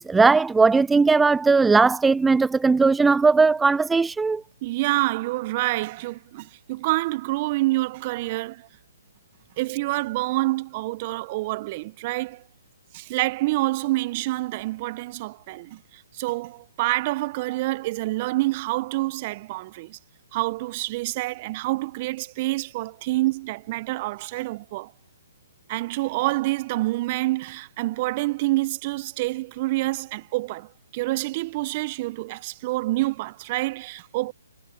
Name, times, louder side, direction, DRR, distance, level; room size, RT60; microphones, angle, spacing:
voice 1, 0.0-4.4, right 4 dB, 5° right, 0.3 m, -18 dB
voice 2, 4.6-8.7 9.6-12.4 12.9-20.0 20.3-24.9 25.7-34.3, right 19 dB, 35° right, 1.2 m, -27 dB
figure-of-eight pair, 135°, 0 cm